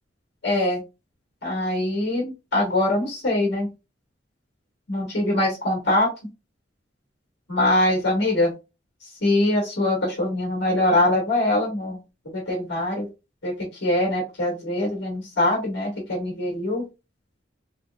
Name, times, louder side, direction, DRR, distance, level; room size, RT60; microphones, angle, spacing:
voice 1, 0.4-0.8 1.4-3.7 4.9-6.1 7.5-8.5 9.0-12.0 12.3-13.1 13.4-16.8, left 1 dB, 90° left, -2 dB, 2.1 m, -23 dB
6.0 x 2.3 x 2.4 m, 0.27 s
head